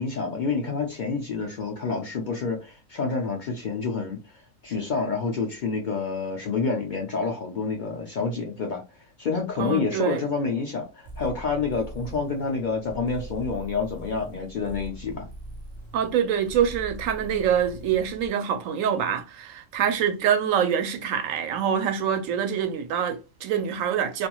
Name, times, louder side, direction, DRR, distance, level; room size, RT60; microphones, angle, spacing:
voice 1, 0.0-4.2 4.6-8.8 9.2-15.3, left 4 dB, 70° left, 0.4 m, -28 dB
voice 2, 9.6-10.3 15.9-24.3, right 8 dB, 75° right, 0.9 m, -25 dB
sound 1, 11.0-18.3, right 1 dB, 35° right, 0.5 m, -41 dB
2.5 x 2.3 x 2.9 m
omnidirectional pair, 1.4 m